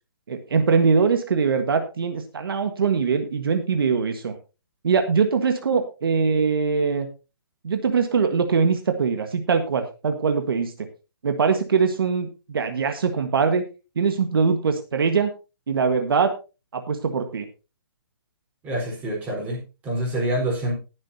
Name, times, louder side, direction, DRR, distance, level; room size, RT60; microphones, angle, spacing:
voice 1, 0.3-4.3 4.8-7.1 7.6-10.9 11.2-13.6 13.9-15.3 15.7-16.3 16.7-17.4, right 5 dB, 70° right, 6 dB, 1.6 m, -22 dB
voice 2, 18.6-20.7, right 1 dB, 10° right, -3 dB, 4.3 m, -27 dB
20.0 x 7.4 x 2.8 m, 0.30 s
hypercardioid pair, 170°, 13 cm